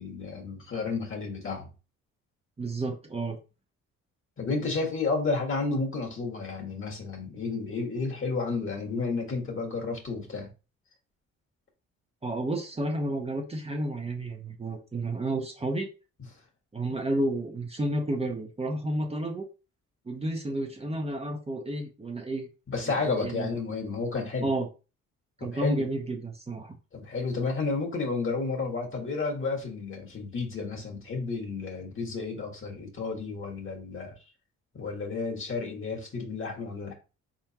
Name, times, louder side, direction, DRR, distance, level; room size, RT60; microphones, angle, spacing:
voice 1, 0.0-1.7 4.4-10.5 16.8-16.9 22.7-24.5 25.4-25.9 26.9-34.1 34.7-36.9, left 4 dB, 45° left, 1.8 m, -31 dB
voice 2, 2.6-3.4 12.2-15.9 16.7-19.5 20.1-22.5 22.8-23.5 24.4-24.7 25.4-26.8, right 1 dB, 20° right, 0.9 m, -31 dB
4.2 x 3.7 x 2.9 m
cardioid pair, 90°, 30 cm